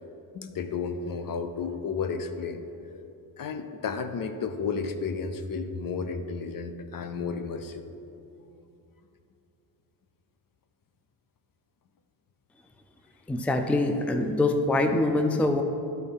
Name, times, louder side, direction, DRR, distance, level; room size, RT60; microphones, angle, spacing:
voice 1, 0.3-2.6 3.4-7.9, left 5 dB, 55° left, 8 dB, 0.6 m, -32 dB
voice 2, 13.3-15.6, left 2 dB, 5° left, 6 dB, 0.4 m, -24 dB
11.0 x 4.2 x 5.5 m, 2.7 s
cardioid pair, 100°, 40 cm